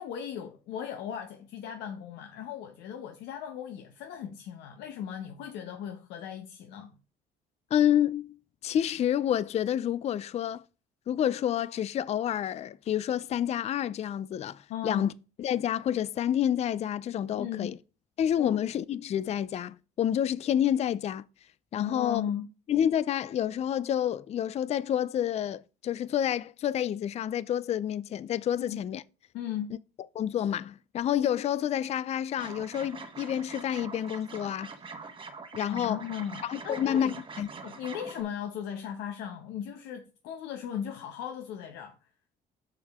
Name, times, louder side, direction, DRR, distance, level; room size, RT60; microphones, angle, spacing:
voice 1, 0.0-6.9 14.7-15.1 17.4-17.7 18.4-18.5 21.8-22.5 28.6-28.8 29.3-29.7 35.7-37.1 37.6-42.0, left 9 dB, 85° left, 1.0 m, -37 dB
voice 2, 7.7-8.4 8.6-10.6 11.1-15.1 15.4-17.8 18.2-21.2 21.7-22.2 22.7-29.0 30.1-34.7 35.5-36.0 36.4-37.5, left 10 dB, 40° left, 0.4 m, -29 dB
sound 1, 32.4-38.2, right 4 dB, 30° right, 1.3 m, -44 dB
7.4 x 6.6 x 3.6 m
cardioid pair, 110°, 17 cm